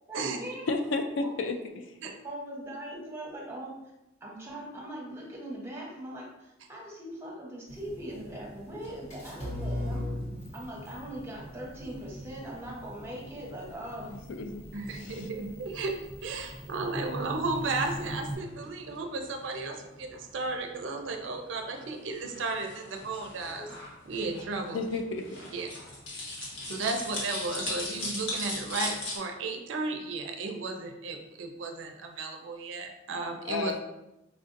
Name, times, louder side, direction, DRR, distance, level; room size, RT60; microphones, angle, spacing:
voice 1, 0.1-0.6 2.2-3.7 4.2-10.0 10.5-14.2, right 1 dB, 15° right, -4 dB, 0.8 m, -41 dB
voice 2, 0.7-2.0 14.1-14.6 14.9-15.3 24.7-25.5 33.5-33.8, left 3 dB, 65° left, 6 dB, 0.3 m, -32 dB
sound 1, 7.7-18.3, equal, 35° left, 0.8 m, -40 dB
voice 3, 14.7-15.9 16.2-23.7 24.0-24.8 25.5-25.7 26.7-33.7, right 3 dB, 70° right, 5 dB, 0.4 m, -34 dB
sound 2, 17.5-29.2, left 2 dB, 85° left, 1.1 m, -40 dB
4.3 x 2.5 x 2.5 m, 0.91 s
head